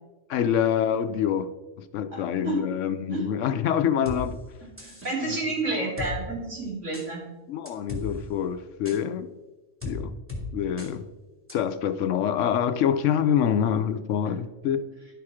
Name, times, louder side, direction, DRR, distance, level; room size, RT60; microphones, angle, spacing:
voice 1, 0.3-1.5 1.8-4.4 5.3-5.4 5.8-5.9 7.5-9.3 9.8-10.1 10.5-11.0 11.5-14.8, left 9 dB, 80° left, 11 dB, 1.0 m, -26 dB
sound 1, 4.1-4.2 4.8-5.1 6.0-6.1 6.9-7.1 7.7-8.1 8.9-9.0 9.8-10.0 10.3-10.4 10.8-10.9 11.5-11.6, left 3 dB, 10° right, 1.9 m, -35 dB
voice 2, 4.6-7.2 14.2-14.3, right 3 dB, 70° right, -4 dB, 3.3 m, -30 dB
11.0 x 5.9 x 4.9 m, 1.2 s
omnidirectional pair, 1.3 m